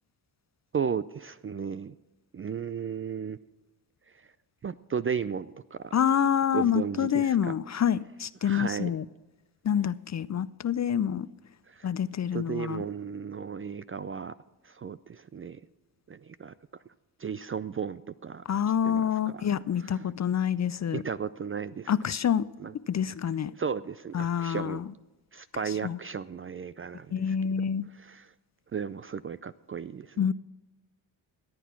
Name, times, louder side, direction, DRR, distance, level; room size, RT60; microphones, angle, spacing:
voice 1, 0.7-1.9 2.3-3.4 4.1-4.2 4.6-5.9 6.5-7.5 8.4-8.9 11.7-11.9 12.3-14.3 14.6-15.6 16.1-16.5 17.2-18.4 18.8-19.4 20.9-21.9 22.6-22.7 23.6-24.8 25.3-27.4 27.9-28.3 28.7-30.2, right 7 dB, 30° right, 15 dB, 0.4 m, -35 dB
voice 2, 5.9-9.0 9.6-11.3 11.8-12.8 18.5-21.0 21.9-22.5 22.9-23.5 24.1-24.9 25.8-26.0 27.1-27.8 30.2-30.3, left 8 dB, 35° left, 17 dB, 0.4 m, -27 dB
14.0 x 9.2 x 5.9 m, 1.1 s
supercardioid pair, 40°, 50 cm